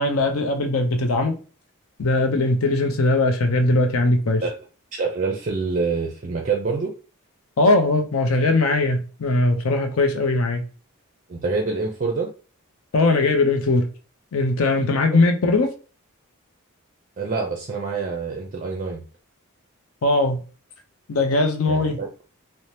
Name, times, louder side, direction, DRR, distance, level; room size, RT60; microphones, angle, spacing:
voice 1, 0.0-1.4 2.0-4.4 7.6-10.6 12.9-13.9 14.3-15.7 20.0-20.4 21.1-22.0, left 2 dB, 65° left, 0.5 m, -20 dB
voice 2, 4.9-6.9 11.3-12.3 17.2-19.0 21.7-22.2, right 4 dB, 35° right, 0.4 m, -26 dB
2.7 x 2.1 x 3.2 m
head